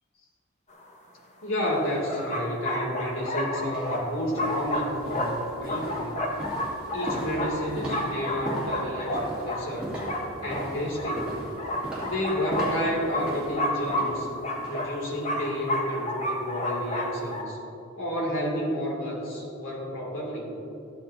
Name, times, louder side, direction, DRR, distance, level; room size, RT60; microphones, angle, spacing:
sound 1, 0.8-0.9 1.6-17.4, left 1 dB, 35° left, 0.9 m, -31 dB
voice 1, 1.4-6.2 6.9-10.0 10.4-11.4 12.0-14.3 14.7-17.6 18.0-20.5, equal, 70° left, -2 dB, 2.4 m, -31 dB
sound 2, 2.9-3.0 3.6-14.9 15.2-15.5 15.9-16.0, right 1 dB, 5° right, 2.4 m, -38 dB
14.5 x 10.5 x 2.7 m, 2.8 s
head